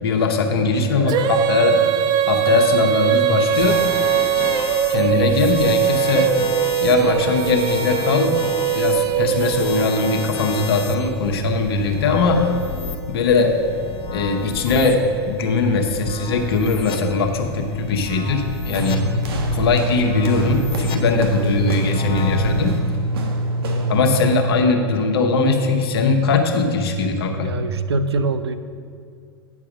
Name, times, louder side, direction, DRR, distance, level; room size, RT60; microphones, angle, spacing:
voice 1, 0.0-1.9 2.3-3.8 4.9-6.4 6.8-8.4 8.7-12.5 13.1-13.6 14.1-19.1 19.5-22.8 23.9-27.6, left 3 dB, 70° left, 3 dB, 1.0 m, -20 dB
voice 2, 0.5-1.3 5.0-5.2 18.9-19.3 23.6-24.0 27.4-28.6, right 3 dB, 90° right, 11 dB, 0.5 m, -26 dB
Female singing, 1.1-10.2, right 11 dB, 30° right, 0.3 m, -21 dB
sound 1, 3.5-22.8, left 5 dB, 40° left, 0.9 m, -32 dB
sound 2, 18.7-24.5, right 1 dB, 70° right, 1.2 m, -24 dB
9.0 x 4.7 x 6.1 m, 2.2 s
hypercardioid pair, 105°, 13 cm